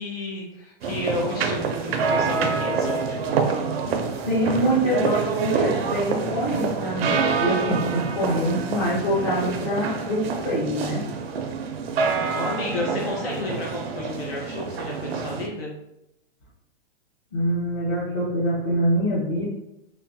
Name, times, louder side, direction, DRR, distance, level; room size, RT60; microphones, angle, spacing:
voice 1, 0.0-3.4 12.1-15.7, left 2 dB, 75° left, -3 dB, 0.8 m, -31 dB
sound 1, 0.8-15.5, right 5 dB, 80° right, 0.5 m, -27 dB
voice 2, 4.3-11.0 17.3-19.4, equal, 20° left, -10 dB, 0.5 m, -24 dB
3.0 x 2.1 x 2.6 m, 0.85 s
hypercardioid pair, 165°, 30 cm